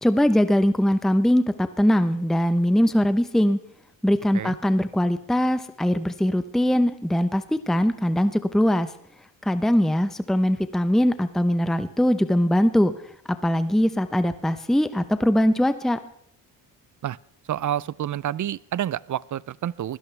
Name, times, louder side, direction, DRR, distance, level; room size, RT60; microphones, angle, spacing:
voice 1, 0.0-3.6 4.0-8.9 9.4-12.9 13.4-16.0, equal, ahead, 11 dB, 0.9 m, -21 dB
voice 2, 17.5-20.0, right 11 dB, 40° right, 23 dB, 0.5 m, -28 dB
23.0 x 16.5 x 3.4 m, 0.71 s
supercardioid pair, 65°, 46 cm